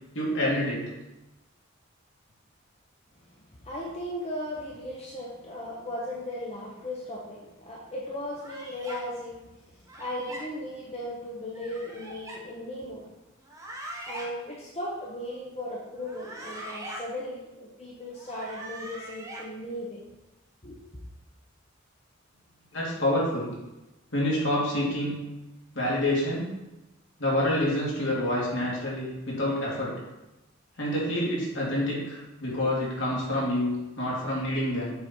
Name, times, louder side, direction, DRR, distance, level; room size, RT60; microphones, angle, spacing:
voice 1, 0.1-0.9 22.7-23.5 24.1-25.2 25.7-26.5 27.2-29.9 30.8-34.9, left 1 dB, 70° left, -6 dB, 2.6 m, -27 dB
voice 2, 3.2-13.1 14.1-20.0 20.6-20.8, left 1 dB, 30° left, -4 dB, 0.9 m, -37 dB
sound 1, 8.4-9.0 9.9-10.4 11.5-12.4 13.4-14.3 16.0-17.0 18.1-19.4, right 1 dB, 15° right, 1.0 m, -41 dB
7.5 x 4.2 x 4.4 m, 0.99 s
head